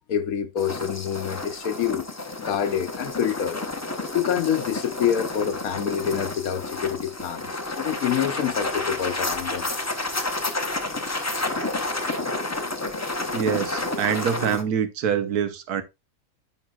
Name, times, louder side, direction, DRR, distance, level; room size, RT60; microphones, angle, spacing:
voice 1, 0.1-2.1 2.4-3.6 3.9-7.5 7.8-9.7, left 9 dB, 70° left, 1.1 m, -26 dB
sound 1, 0.6-14.6, left 2 dB, 20° left, 0.5 m, -30 dB
voice 2, 13.3-15.8, right 8 dB, 80° right, 1.4 m, -25 dB
14.5 x 4.8 x 2.4 m
omnidirectional pair, 1.6 m